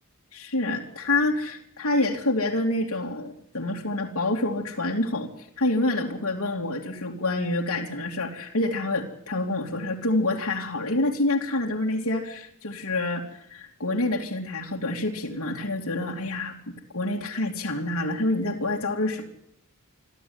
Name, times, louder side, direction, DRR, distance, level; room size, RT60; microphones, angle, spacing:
voice 1, 0.3-19.2, left 2 dB, 75° left, -1 dB, 2.7 m, -27 dB
25.5 x 13.5 x 9.7 m, 0.72 s
head